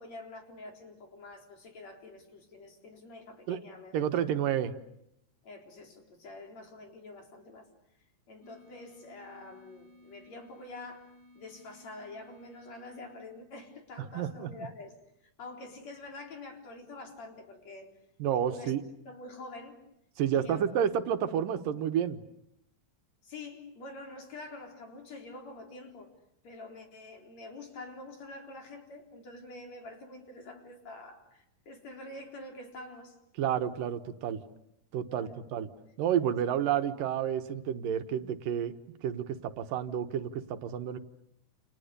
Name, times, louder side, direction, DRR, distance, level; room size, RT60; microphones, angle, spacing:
voice 1, 0.0-3.9 5.4-7.7 8.3-15.0 15.4-17.9 18.3-18.7 19.0-19.8 20.3-20.7 23.2-26.1 26.4-33.2 35.0-35.4, left 2 dB, 55° left, 5.0 m, -47 dB
voice 2, 3.9-4.7 14.1-14.7 18.2-18.8 20.2-22.2 33.4-34.4 34.9-35.7 36.0-38.7 39.0-41.0, right 9 dB, 85° right, 2.9 m, -30 dB
sound 1, 8.4-14.0, left 1 dB, 15° right, 4.9 m, -58 dB
29.5 x 29.5 x 6.8 m
omnidirectional pair, 3.8 m